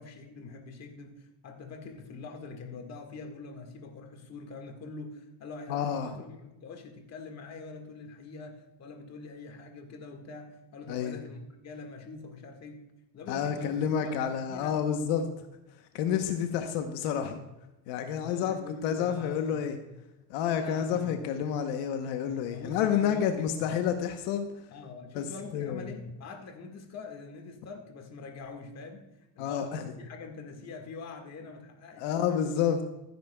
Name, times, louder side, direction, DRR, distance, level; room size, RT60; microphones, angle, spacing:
voice 1, 0.0-12.8 13.1-14.8 18.1-19.6 20.6-21.5 22.5-23.8 24.7-29.0 29.4-32.1, left 4 dB, 40° left, 4 dB, 1.7 m, -44 dB
voice 2, 5.7-6.1 10.9-11.2 13.3-15.3 15.9-17.4 17.9-18.6 18.8-19.8 20.3-24.5 25.1-25.2 25.5-25.9 29.4-29.8 32.0-32.8, left 8 dB, 90° left, 6 dB, 1.0 m, -29 dB
15.0 x 9.3 x 2.3 m, 0.95 s
cardioid pair, 130°, 39 cm